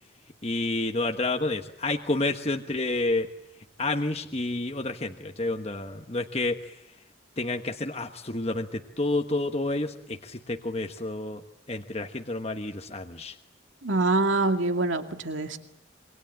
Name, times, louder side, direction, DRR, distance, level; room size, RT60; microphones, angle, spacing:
voice 1, 0.4-3.3 3.8-6.7 7.4-11.4 11.7-13.4, left 2 dB, 30° left, 4 dB, 1.3 m, -29 dB
voice 2, 13.8-15.6, right 2 dB, 80° right, 6 dB, 2.3 m, -25 dB
27.0 x 23.5 x 8.8 m, 0.80 s
head